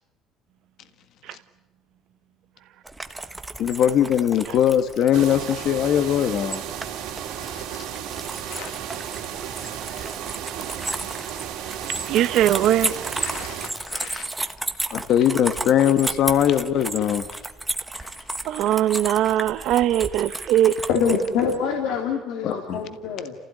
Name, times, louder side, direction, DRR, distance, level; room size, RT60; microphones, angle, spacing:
sound 1, 2.8-21.6, right 2 dB, 10° right, 1.2 m, -33 dB
voice 1, 3.6-6.6 7.5-7.8 8.5-8.7 13.3-14.3 14.9-17.3 22.4-22.8, left 10 dB, 55° left, 1.5 m, -21 dB
sound 2, 5.1-13.7, right 9 dB, 80° right, 3.0 m, -34 dB
voice 2, 11.8-13.1 18.4-20.8, right 12 dB, 65° right, 1.1 m, -21 dB
voice 3, 20.9-23.3, left 5 dB, 80° left, 3.0 m, -25 dB
29.5 x 16.0 x 9.6 m
cardioid pair, 135°, 0 cm